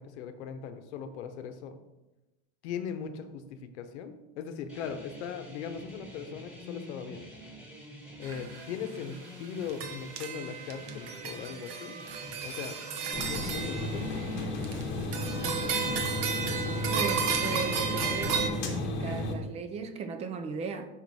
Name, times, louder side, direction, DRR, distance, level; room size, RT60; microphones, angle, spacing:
voice 1, 0.0-1.8 2.6-7.3 8.2-12.0 12.4-12.8 13.2-14.3, left 7 dB, 75° left, 8 dB, 0.9 m, -39 dB
sound 1, 4.7-14.5, equal, 5° right, 1.3 m, -48 dB
sound 2, 8.2-8.7 9.1-9.2 9.6-14.8 15.1-18.5, right 6 dB, 90° right, 0.9 m, -33 dB
sound 3, 13.1-19.3, left 2 dB, 35° left, 1.0 m, -33 dB
voice 2, 16.9-20.9, right 5 dB, 20° right, 8 dB, 0.3 m, -37 dB
5.7 x 4.6 x 4.1 m, 1.0 s
supercardioid pair, 140°, 34 cm